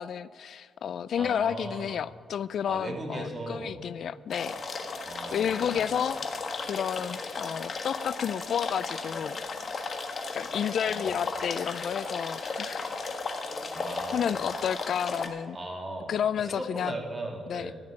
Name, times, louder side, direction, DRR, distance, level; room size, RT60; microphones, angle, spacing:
voice 1, 0.0-4.6 5.3-6.2 6.7-9.4 10.3-12.8 14.1-15.6 16.1-16.9 17.5-17.7, left 8 dB, 70° left, 18 dB, 0.3 m, -31 dB
voice 2, 1.2-2.0 2.6-3.9 5.1-5.8 10.9-11.2 13.7-14.4 15.5-17.8, right 1 dB, 30° right, 1 dB, 2.9 m, -38 dB
sound 1, 4.3-15.3, left 3 dB, 50° left, 1.5 m, -35 dB
13.5 x 6.5 x 8.8 m, 2.1 s
cardioid pair, 70°, 0 cm